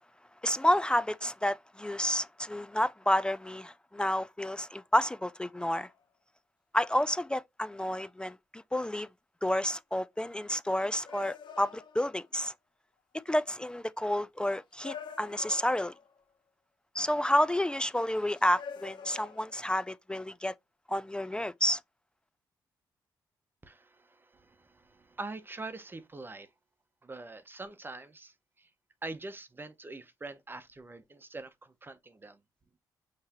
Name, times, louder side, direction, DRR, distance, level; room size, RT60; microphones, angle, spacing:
voice 1, 0.4-5.9 6.7-9.1 9.4-12.5 13.3-15.9 17.0-20.5 20.9-21.8, left 1 dB, 10° left, 0.3 m, -30 dB
sound 1, 5.9-6.0 10.2-10.3 11.0-12.4 13.3-13.4 14.7-16.2 18.3-19.8, left 7 dB, 70° left, 0.9 m, -47 dB
voice 2, 23.6-26.5 27.0-28.7 29.0-32.4, right 2 dB, 25° right, 0.8 m, -44 dB
5.6 x 3.2 x 2.9 m
cardioid pair, 65°, 8 cm